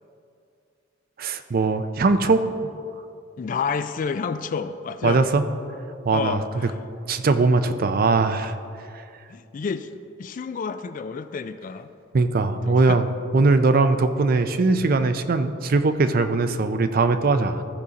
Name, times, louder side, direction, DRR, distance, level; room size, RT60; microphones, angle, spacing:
voice 1, 1.2-2.4 5.0-5.4 6.1-6.4 7.1-8.5 12.1-13.1 13.3-17.6, right 3 dB, 50° right, 9 dB, 0.5 m, -20 dB
voice 2, 3.4-5.2 6.1-6.8 9.3-9.9 10.2-11.9 12.7-13.0, left 5 dB, 45° left, 11 dB, 0.3 m, -29 dB
14.5 x 5.0 x 4.1 m, 2.5 s
head